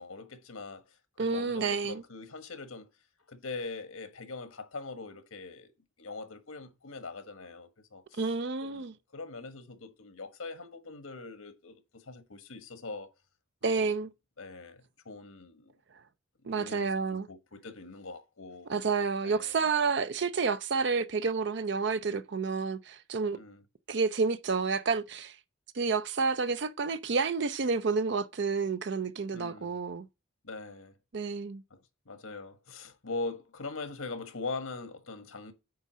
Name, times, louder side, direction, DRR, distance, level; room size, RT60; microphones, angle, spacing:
voice 1, 0.0-2.9 3.3-5.7 6.0-8.2 8.6-13.1 13.7-14.0 14.4-15.7 16.5-18.7 19.2-19.6 23.3-23.6 29.3-29.8 30.4-30.9 31.7-31.8 32.0-35.5, left 3 dB, 90° left, 1.4 m, -42 dB
voice 2, 1.2-2.0 8.2-8.9 13.6-14.1 16.5-17.3 18.7-23.4 23.9-25.4 25.7-30.1 31.1-31.6, right 4 dB, 55° right, 0.5 m, -30 dB
9.5 x 3.6 x 6.2 m
head